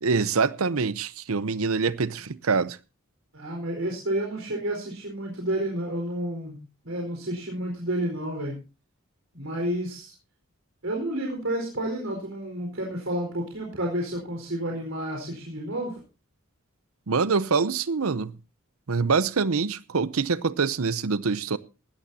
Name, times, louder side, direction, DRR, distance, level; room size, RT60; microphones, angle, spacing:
voice 1, 0.0-2.8 17.1-18.4 18.9-21.6, right 4 dB, 85° right, 0.7 m, -25 dB
voice 2, 3.3-8.5 9.3-10.1 10.8-16.0, right 1 dB, 70° right, 4.6 m, -30 dB
18.5 x 13.5 x 2.8 m
head